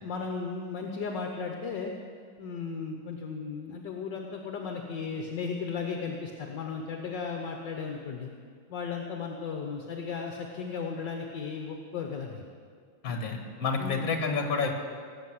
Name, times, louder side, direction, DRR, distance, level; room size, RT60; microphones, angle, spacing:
voice 1, 0.0-1.9 2.4-8.3 8.7-12.4 13.1-13.2 13.8-14.1, left 5 dB, 65° left, 3 dB, 1.6 m, -35 dB
voice 2, 13.0-14.7, left 4 dB, 45° left, 4 dB, 1.9 m, -29 dB
18.0 x 7.8 x 7.8 m, 2.1 s
omnidirectional pair, 2.2 m